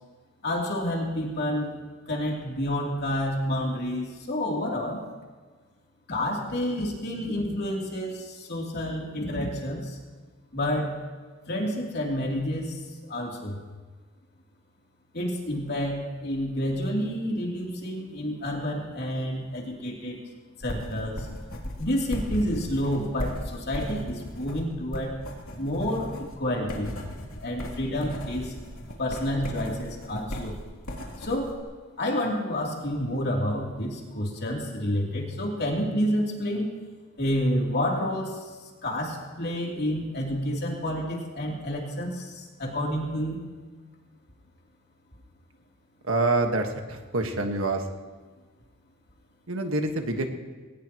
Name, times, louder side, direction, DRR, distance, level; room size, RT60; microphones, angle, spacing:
voice 1, 0.4-1.8 2.1-5.0 6.1-10.0 10.5-11.0 11.5-12.8 13.1-13.6 15.1-20.2 20.6-21.3 21.8-25.1 25.6-26.9 27.4-28.5 29.0-30.6 31.2-31.5 32.0-36.7 37.2-38.5 38.8-43.4, equal, 50° left, -2 dB, 3.2 m, -29 dB
sound 1, 20.6-31.6, equal, 80° left, 3.0 m, -37 dB
voice 2, 46.1-47.8 49.5-50.3, right 2 dB, 70° right, 4 dB, 1.6 m, -26 dB
20.5 x 18.5 x 3.1 m, 1.4 s
head